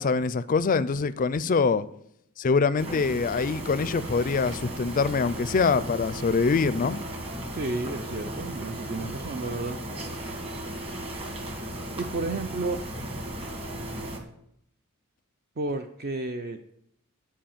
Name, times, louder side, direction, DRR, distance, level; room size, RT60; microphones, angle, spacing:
voice 1, 0.0-1.9 2.4-7.0, left 4 dB, 40° left, 0.4 m, -24 dB
sound 1, 2.8-14.2, right 1 dB, 25° right, 1.5 m, -36 dB
voice 2, 7.5-9.8 12.0-12.8 15.6-16.6, right 3 dB, 45° right, 0.5 m, -32 dB
10.5 x 4.8 x 7.2 m
head